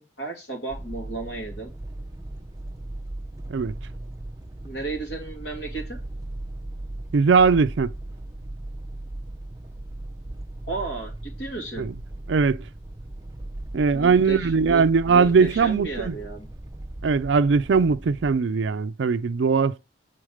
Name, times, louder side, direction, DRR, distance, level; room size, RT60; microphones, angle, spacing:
voice 1, 0.0-1.7 4.6-6.0 10.7-11.1 11.4-11.9 13.9-16.5, right 3 dB, 60° left, 2.4 m, -34 dB
sound 1, 0.7-18.4, right 1 dB, 20° right, 0.6 m, -38 dB
voice 2, 7.1-7.9 11.8-11.9 12.3-12.6 13.7-16.2 17.0-19.8, right 5 dB, 70° right, 0.4 m, -20 dB
7.8 x 3.9 x 4.9 m
head